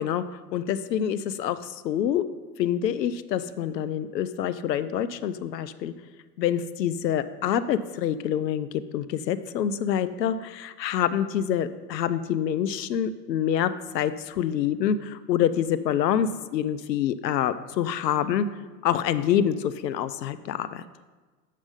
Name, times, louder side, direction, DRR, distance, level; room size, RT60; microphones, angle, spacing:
voice 1, 0.0-2.2 2.6-5.9 6.4-8.7 8.9-18.5 18.8-20.8, left 9 dB, 80° left, 13 dB, 0.6 m, -26 dB
7.5 x 5.2 x 5.1 m, 1.3 s
figure-of-eight pair, 85°, 49 cm